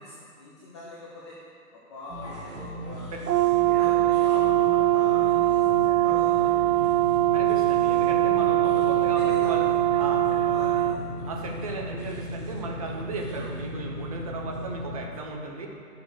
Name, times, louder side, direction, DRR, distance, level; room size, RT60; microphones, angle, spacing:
voice 1, 0.0-1.4 1.7-3.2 3.6-7.0 9.0-9.5 9.9-10.0 10.3-11.1, left 2 dB, 20° left, -7 dB, 0.7 m, -43 dB
sound 1, 2.1-15.0, equal, 45° right, 2.1 m, -36 dB
Brass instrument, 3.3-11.0, right 15 dB, 80° right, 0.6 m, -22 dB
voice 2, 7.3-9.7 10.0-10.3 11.2-15.7, right 3 dB, 25° right, 1 dB, 0.7 m, -36 dB
11.0 x 6.8 x 4.7 m, 2.5 s
hypercardioid pair, 150°, 48 cm